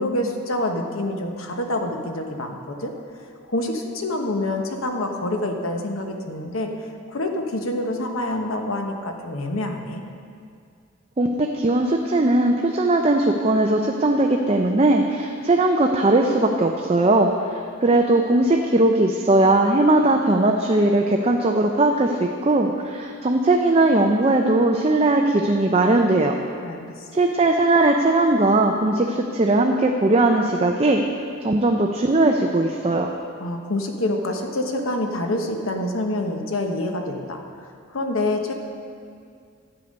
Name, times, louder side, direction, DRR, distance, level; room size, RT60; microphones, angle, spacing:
voice 1, 0.0-2.9 3.5-6.7 7.1-10.0 26.6-27.0 33.4-37.4 37.9-38.5, left 1 dB, 85° left, 4 dB, 1.1 m, -26 dB
voice 2, 11.2-26.3 27.1-33.1, right 2 dB, 30° right, 3 dB, 0.5 m, -19 dB
11.5 x 8.2 x 5.3 m, 2.3 s
head